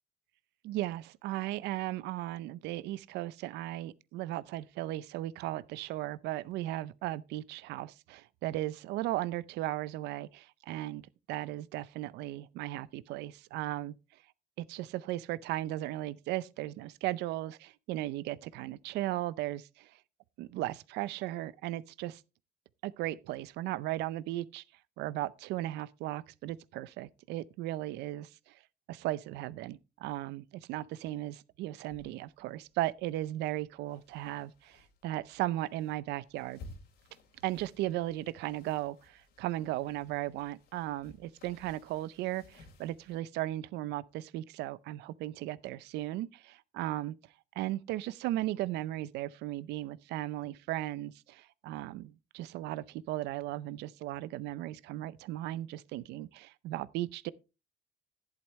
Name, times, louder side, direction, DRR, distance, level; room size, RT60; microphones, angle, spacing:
voice 1, 0.6-11.0 11.3-13.9 14.6-19.9 20.4-22.2 22.8-24.6 25.0-28.5 28.9-36.6 37.4-47.2 47.6-57.3, right 15 dB, 85° right, 0.6 m, -36 dB
sound 1, 31.9-43.2, left 2 dB, 75° left, 3.2 m, -57 dB
11.5 x 11.0 x 3.2 m
cardioid pair, 110°, 17 cm